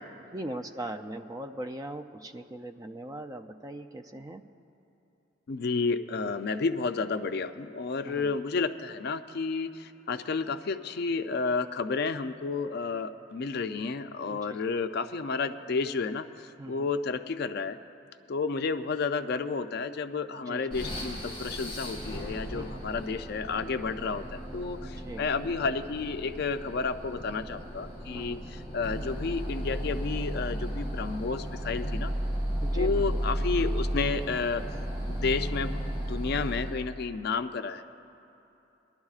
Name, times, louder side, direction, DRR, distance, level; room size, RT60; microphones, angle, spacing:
voice 1, 0.3-4.4 8.0-8.3 14.3-14.6 16.6-16.9 20.4-20.8 22.5-22.9 24.8-25.3 28.1-28.4 32.6-33.3, right 1 dB, 20° right, 7 dB, 0.3 m, -40 dB
voice 2, 5.5-17.8 18.3-28.4 28.7-32.1 32.7-34.6 35.1-35.8 36.1-37.8, left 4 dB, 55° left, 10 dB, 0.4 m, -31 dB
sound 1, 20.7-36.9, equal, 30° left, 3.3 m, -34 dB
24.0 x 12.0 x 2.4 m, 2.9 s
head